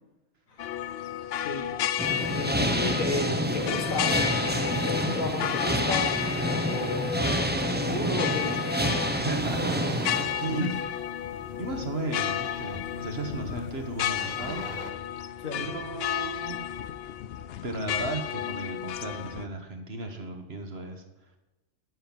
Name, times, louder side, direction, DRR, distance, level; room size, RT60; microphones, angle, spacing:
Kerimäki Church bells, 0.6-19.4, left 10 dB, 65° left, 0.7 m, -32 dB
voice 1, 1.3-1.7 2.1-6.2 6.7-8.7 10.5-10.7 15.4-15.6, left 2 dB, 80° left, 2 dB, 2.2 m, -34 dB
sound 1, 2.0-10.2, equal, 10° right, 0.8 m, -28 dB
voice 2, 9.1-10.8 11.6-14.7 15.5-16.7 17.6-21.0, right 3 dB, 50° right, 4 dB, 1.7 m, -35 dB
sound 2, 9.4-14.9, right 3 dB, 90° right, 2.1 m, -42 dB
9.7 x 7.8 x 8.9 m, 1.0 s
omnidirectional pair, 1.4 m